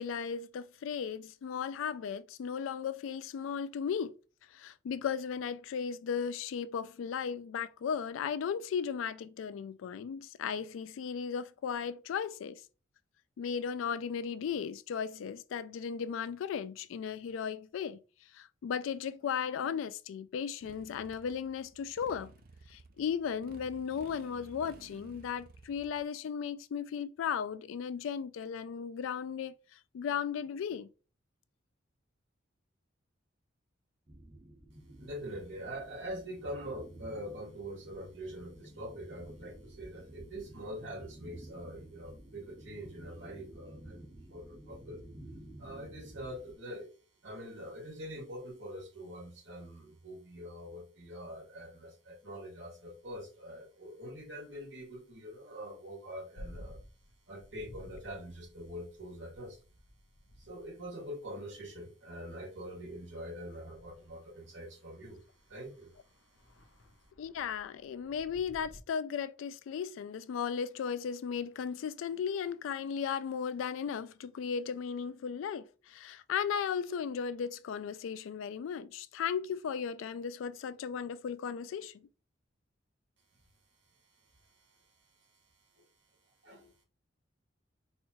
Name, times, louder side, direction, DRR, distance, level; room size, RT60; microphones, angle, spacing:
voice 1, 0.0-4.1 4.5-12.6 13.4-18.0 18.3-22.3 22.7-29.5 29.9-30.9 67.2-82.1, left 7 dB, 85° left, 0.3 m, -36 dB
Motorcycle, 20.6-26.0, right 3 dB, 50° right, 0.4 m, -55 dB
sound 1, 34.1-46.5, right 1 dB, 25° right, 1.1 m, -52 dB
voice 2, 35.0-45.0 45.6-46.9 47.2-56.8 57.3-59.6 60.4-65.2 65.5-65.9 85.7-85.8 86.4-86.7, equal, 70° right, 1.9 m, -44 dB
sound 2, 56.4-61.3 62.3-62.4 62.8-68.8, equal, 70° left, 0.7 m, -54 dB
4.2 x 2.3 x 2.9 m
head